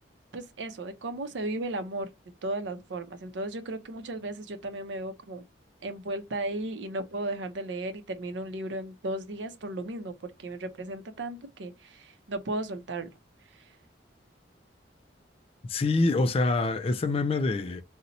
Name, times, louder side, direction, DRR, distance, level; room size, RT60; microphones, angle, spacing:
voice 1, 0.3-2.1 2.4-5.4 5.8-10.1 10.4-13.1, right 2 dB, 80° right, 0.6 m, -35 dB
voice 2, 15.7-17.8, left 3 dB, 35° left, 0.3 m, -25 dB
2.6 x 2.1 x 4.0 m
head